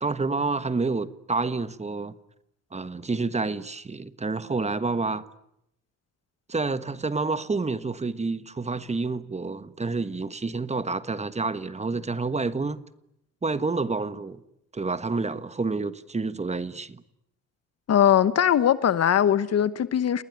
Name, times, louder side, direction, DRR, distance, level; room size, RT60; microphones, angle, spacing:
voice 1, 0.0-2.1 2.7-5.2 6.5-12.8 13.4-14.4 14.7-17.0, right 3 dB, 20° right, 1.3 m, -28 dB
voice 2, 17.9-20.2, left 9 dB, 55° left, 1.2 m, -20 dB
30.0 x 19.5 x 9.7 m
cardioid pair, 90°, 30 cm